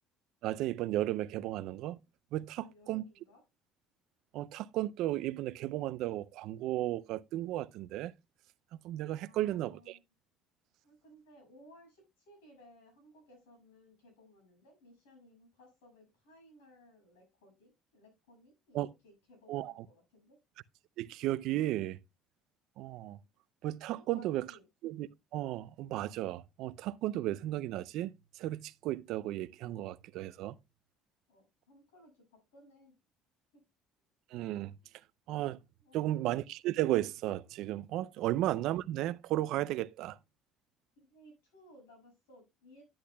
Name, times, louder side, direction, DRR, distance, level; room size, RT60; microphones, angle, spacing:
voice 1, 0.4-2.0 2.3-3.0 4.3-8.1 8.7-10.0 18.7-18.9 19.5-19.7 21.0-22.0 22.8-23.2 23.6-24.5 24.8-30.5 34.3-34.7 35.3-35.6 35.9-40.2, right 14 dB, 70° right, 0.4 m, -34 dB
voice 2, 2.6-3.4 9.2-10.0 10.8-20.4 23.9-24.7 31.3-32.9 33.5-33.6 35.8-36.2 38.2-38.3 40.9-42.8, equal, 85° left, 6.5 m, -60 dB
10.0 x 10.0 x 2.3 m
hypercardioid pair, 65°, 0 cm